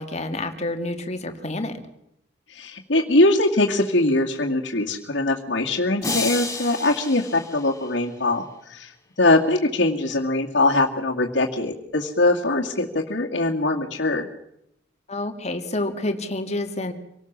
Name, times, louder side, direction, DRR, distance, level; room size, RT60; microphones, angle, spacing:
voice 1, 0.0-1.9 15.1-16.9, left 2 dB, 35° left, 7 dB, 2.3 m, -28 dB
voice 2, 2.5-8.9 9.2-14.3, left 2 dB, 70° left, -4 dB, 2.2 m, -22 dB
sound 1, 6.0-8.3, left 3 dB, 15° left, 5.5 m, -31 dB
26.5 x 18.5 x 7.4 m, 0.78 s
head